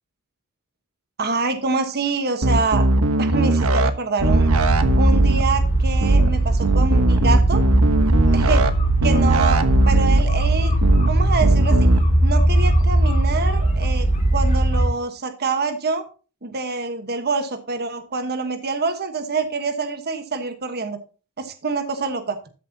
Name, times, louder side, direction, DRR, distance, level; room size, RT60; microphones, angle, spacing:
voice 1, 1.2-4.6 5.0-7.6 8.3-8.6 9.0-10.7 11.0-11.9 12.2-16.0 16.4-21.0 21.4-22.4, right 4 dB, 45° right, 8 dB, 1.3 m, -26 dB
sound 1, 2.4-3.9 4.2-5.4 6.0-6.3 6.6-8.7 9.0-10.2 10.8-11.1 11.4-12.0, right 2 dB, 65° right, 1.1 m, -18 dB
sound 2, 4.2-14.9, right 1 dB, 35° left, 2.5 m, -19 dB
13.5 x 7.6 x 2.8 m, 0.34 s
head